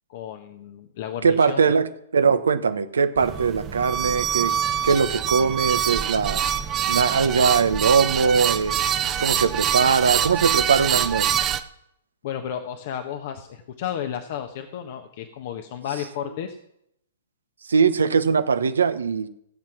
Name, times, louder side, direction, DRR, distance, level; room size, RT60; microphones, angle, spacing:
voice 1, 0.1-1.7 12.2-16.6, left 9 dB, 50° left, 1.2 m, -33 dB
voice 2, 1.2-4.5 4.8-6.4 6.9-8.8 9.2-11.4 17.7-19.3, right 5 dB, 75° right, 1.0 m, -21 dB
sound 1, 3.2-11.6, right 9 dB, 25° right, 0.9 m, -25 dB
16.0 x 7.6 x 6.0 m
hypercardioid pair, 120°, 0 cm